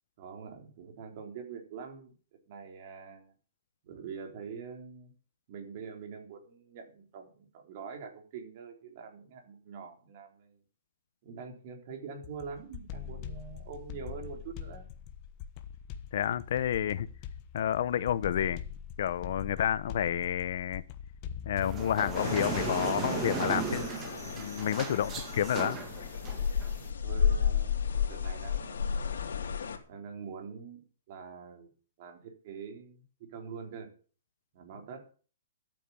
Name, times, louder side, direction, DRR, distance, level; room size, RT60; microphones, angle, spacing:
voice 1, 0.2-2.1 2.5-3.3 3.8-5.1 5.5-10.6 11.2-14.9 25.1-25.2 25.6-25.8 27.0-29.1 29.9-31.7 32.0-33.9 34.5-35.1, right 6 dB, 45° right, 3.6 m, -45 dB
sound 1, 12.2-22.9, left 8 dB, 30° left, 1.2 m, -43 dB
voice 2, 16.1-17.1 17.5-18.6 19.0-20.8 21.4-23.9 24.3-25.8, left 10 dB, 60° left, 0.8 m, -30 dB
sound 2, 21.6-26.9, right 5 dB, 20° right, 1.9 m, -36 dB
sound 3, 22.1-29.8, left 7 dB, 85° left, 3.2 m, -32 dB
12.5 x 9.0 x 7.1 m
hypercardioid pair, 160°, 0 cm